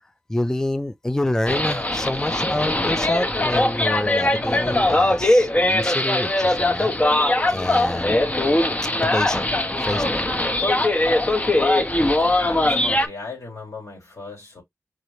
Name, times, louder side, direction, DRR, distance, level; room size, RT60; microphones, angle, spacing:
voice 1, 0.0-6.9 7.5-8.2 9.0-9.5 9.8-10.5, left 1 dB, 10° left, 0.4 m, -27 dB
sound 1, 1.5-13.1, left 1 dB, 25° left, 0.9 m, -21 dB
voice 2, 12.3-14.6, left 3 dB, 80° left, 3.7 m, -37 dB
4.8 x 2.8 x 3.2 m
wide cardioid pair, 60°, 5 cm